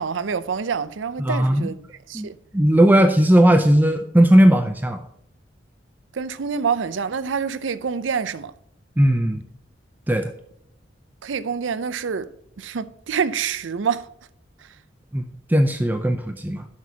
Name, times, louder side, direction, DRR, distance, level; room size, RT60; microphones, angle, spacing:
voice 1, 0.0-1.8 2.1-2.4 6.1-8.5 11.2-12.3 12.6-14.1, right 6 dB, 85° right, 0.5 m, -26 dB
voice 2, 1.2-1.7 2.1-2.3 2.5-5.0 9.0-9.4 10.1-10.3 15.1-16.7, right 1 dB, 10° right, 0.5 m, -17 dB
12.0 x 6.0 x 2.8 m
head